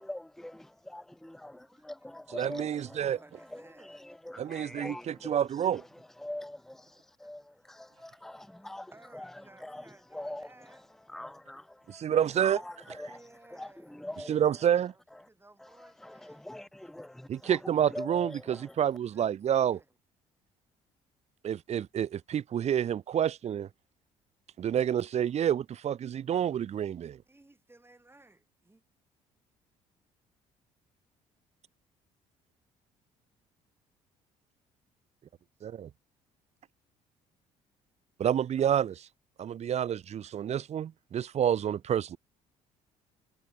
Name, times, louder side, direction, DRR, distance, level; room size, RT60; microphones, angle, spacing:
voice 1, 0.0-13.2 13.5-14.6 15.1-15.3 15.6-18.8, left 1 dB, ahead, 0.8 m, -44 dB
voice 2, 1.5-2.2 2.5-4.1 7.2-7.7 7.9-8.1 8.4-10.8 13.1-16.4 19.0-19.9 27.2-28.8, right 2 dB, 15° right, 6.5 m, -58 dB
voice 3, 2.3-3.2 4.4-5.8 11.9-12.6 14.3-14.9 17.3-19.8 21.4-23.7 24.6-27.2 35.6-35.9 38.2-39.1 39.4-42.2, right 9 dB, 45° right, 0.6 m, -28 dB
hypercardioid pair, 60°, 16 cm